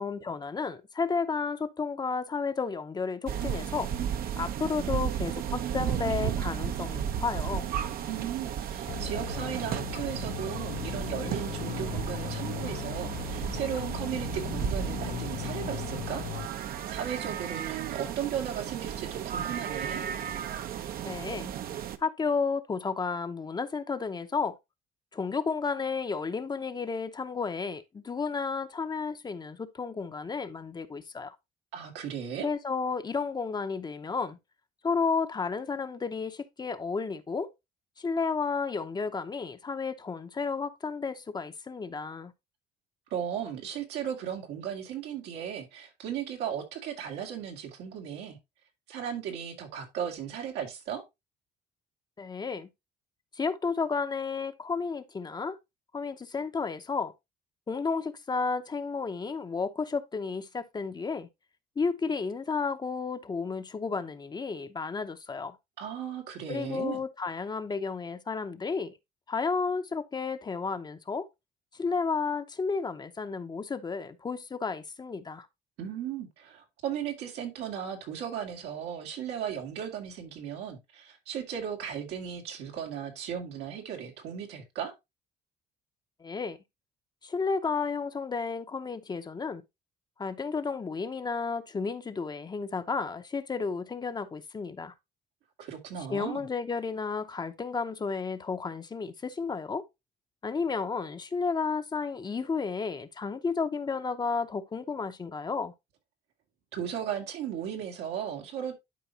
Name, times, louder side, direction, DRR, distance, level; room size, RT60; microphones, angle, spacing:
voice 1, 0.0-3.9 4.4-7.7 21.0-21.5 22.0-24.6 25.1-31.4 32.4-34.4 34.8-37.5 38.0-42.3 52.2-52.7 53.3-55.6 55.9-57.1 57.7-61.3 61.8-65.6 66.5-68.9 69.3-71.3 71.7-75.5 86.2-86.6 87.2-89.6 90.2-94.9 96.1-99.8 100.4-105.7, left 5 dB, 25° left, 0.7 m, -32 dB
sound 1, 3.3-22.0, right 9 dB, 60° right, 0.8 m, -34 dB
voice 2, 8.1-16.2 16.9-20.0 31.7-32.5 43.1-48.4 48.9-51.0 65.8-67.0 75.8-84.9 95.6-96.5 106.7-108.7, right 9 dB, 90° right, 2.3 m, -36 dB
sound 2, 8.9-16.5, left 14 dB, 70° left, 0.5 m, -38 dB
11.5 x 4.7 x 2.8 m
cardioid pair, 110°, 17 cm